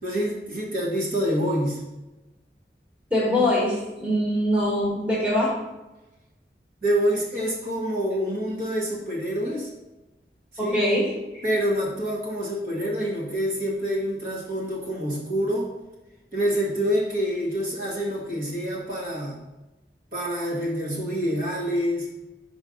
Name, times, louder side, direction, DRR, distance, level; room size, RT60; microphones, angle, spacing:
voice 1, 0.0-1.8 6.8-9.7 10.5-10.8 11.4-15.7 16.3-19.4 20.1-22.1, equal, 50° right, -5 dB, 1.9 m, -26 dB
voice 2, 3.1-5.6 10.6-11.4, left 1 dB, 10° right, -5 dB, 1.6 m, -23 dB
5.5 x 4.8 x 5.2 m, 1.0 s
head